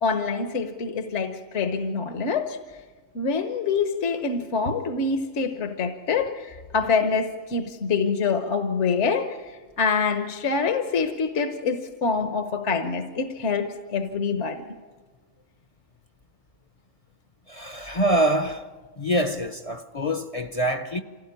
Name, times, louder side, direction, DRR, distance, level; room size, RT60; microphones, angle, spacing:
voice 1, 0.0-2.6 3.1-14.7, left 5 dB, 65° left, 1.4 m, -26 dB
voice 2, 17.5-18.7 19.0-21.0, right 1 dB, 35° left, 0.7 m, -25 dB
26.5 x 17.0 x 9.6 m
omnidirectional pair, 1.3 m